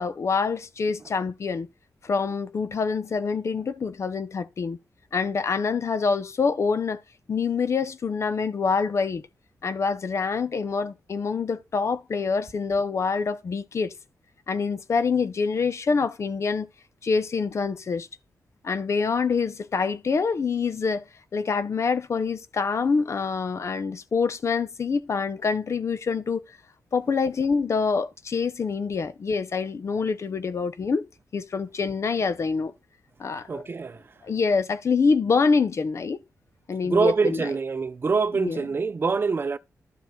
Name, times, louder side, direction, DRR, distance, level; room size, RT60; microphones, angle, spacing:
voice 1, 0.0-1.7 2.0-4.8 5.1-7.0 7.3-9.2 9.6-13.9 14.5-16.7 17.0-18.1 18.6-21.0 21.3-26.4 26.9-31.1 31.3-32.7 33.2-33.6 34.2-36.2 36.7-37.5 38.3-38.6, left 5 dB, 55° left, 0.7 m, -26 dB
voice 2, 33.5-34.0 36.8-39.6, right 4 dB, 40° right, 0.6 m, -25 dB
12.0 x 4.8 x 3.8 m
wide cardioid pair, 95°, 6 cm